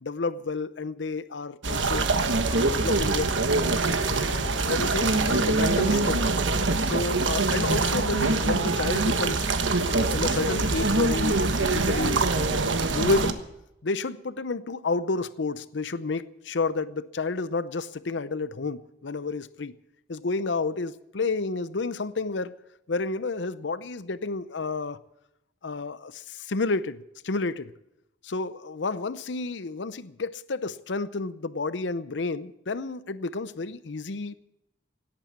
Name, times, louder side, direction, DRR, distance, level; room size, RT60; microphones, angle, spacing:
voice 1, 0.0-2.1 2.5-3.4 4.1-6.3 6.8-9.5 9.9-13.4 13.8-19.7 20.1-22.5 22.9-25.0 25.6-27.7 28.2-34.3, left 3 dB, 75° left, 0.7 m, -30 dB
sound 1, 1.6-13.3, right 3 dB, 80° right, 1.3 m, -24 dB
17.5 x 8.9 x 8.1 m
head